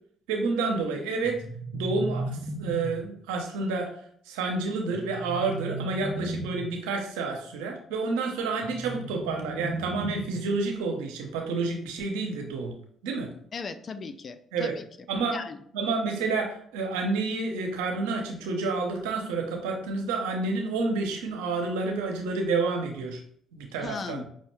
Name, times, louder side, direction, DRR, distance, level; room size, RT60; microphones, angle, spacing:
voice 1, 0.3-1.4 1.7-2.3 2.6-3.9 4.3-12.7 13.0-13.3 14.5-14.7 15.1-15.4 15.7-23.2 23.5-24.3, right 3 dB, 90° right, 2 dB, 0.7 m, -29 dB
sound 1, 1.2-3.2 4.9-6.8 8.6-10.6, right 2 dB, 45° right, 0.6 m, -35 dB
voice 2, 13.5-14.8 15.3-15.6 23.8-24.3, left 5 dB, 45° left, 11 dB, 0.4 m, -37 dB
5.5 x 2.1 x 3.1 m, 0.62 s
supercardioid pair, 60°, 0 cm